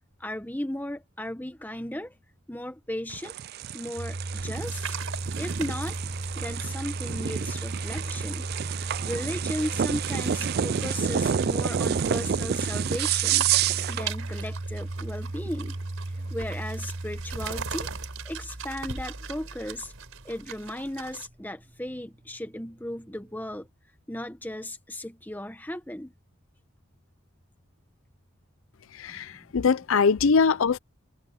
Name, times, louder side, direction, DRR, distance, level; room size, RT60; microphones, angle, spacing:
voice 1, 0.2-2.2 2.5-3.3 3.7-5.0 5.4-6.0 6.3-8.5 9.0-15.8 16.1-17.9 18.2-19.9 20.2-23.7 24.1-26.1 29.1-29.5, left 1 dB, 10° left, 1.3 m, -36 dB
sound 1, 3.1-14.1, right 8 dB, 45° right, 0.3 m, -29 dB
Domestic sounds home sounds, 4.0-20.9, right 2 dB, 30° right, 1.4 m, -36 dB
sound 2, 4.5-21.3, right 6 dB, 80° right, 4.2 m, -41 dB
voice 2, 29.0-30.8, left 5 dB, 70° left, 0.5 m, -22 dB
head